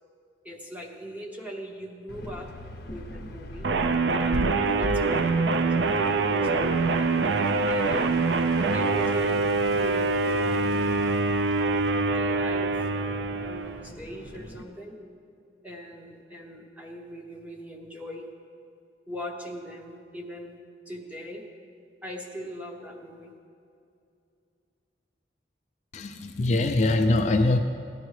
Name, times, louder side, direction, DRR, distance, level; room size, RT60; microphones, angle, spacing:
voice 1, 0.4-2.5 2.9-3.7 4.1-6.5 6.8-8.0 8.7-11.0 12.1-15.0 15.6-18.3 19.1-20.6 20.9-21.5 22.0-23.3, equal, 10° right, 1 dB, 1.0 m, -40 dB
sound 1, 2.1-14.6, left 1 dB, 60° left, 0.8 m, -39 dB
sound 2, 3.6-13.9, right 3 dB, 75° right, 0.4 m, -24 dB
voice 2, 25.9-27.6, left 2 dB, 40° left, 5 dB, 0.4 m, -23 dB
14.5 x 10.5 x 3.2 m, 2.5 s
head